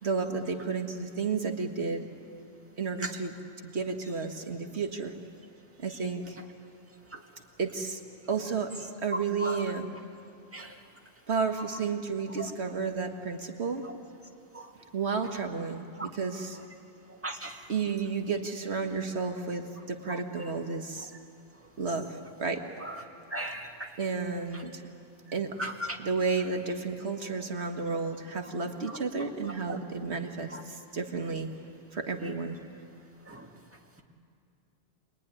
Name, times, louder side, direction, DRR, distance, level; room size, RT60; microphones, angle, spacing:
voice 1, 0.0-2.1 2.8-3.3 3.6-5.1 5.8-6.4 7.6-8.0 8.3-8.7 9.0-9.9 11.3-13.9 14.9-16.6 17.7-21.1 21.8-22.6 24.0-24.8 25.3-25.6 26.0-31.5 31.9-32.6, right 4 dB, 80° right, 4 dB, 1.8 m, -32 dB
voice 2, 17.2-17.6 22.8-22.9 23.3-23.9 25.6-25.7 33.3-33.5, right 1 dB, 10° right, 1 dB, 2.0 m, -36 dB
25.5 x 22.0 x 9.9 m, 2.5 s
omnidirectional pair, 1.1 m